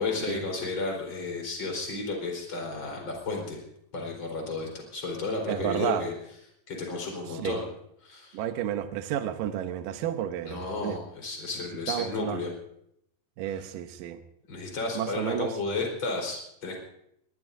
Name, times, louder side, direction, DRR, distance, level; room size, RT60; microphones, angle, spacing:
voice 1, 0.0-3.6 3.9-6.1 6.7-7.6 8.0-8.4 10.5-12.5 14.5-16.8, left 3 dB, 30° left, 0 dB, 4.6 m, -33 dB
voice 2, 5.5-6.1 7.3-7.6 8.3-11.0 11.9-12.4 13.4-14.2 15.0-15.5, right 11 dB, 75° right, 7 dB, 2.1 m, -31 dB
23.5 x 19.0 x 2.7 m, 0.74 s
omnidirectional pair, 4.9 m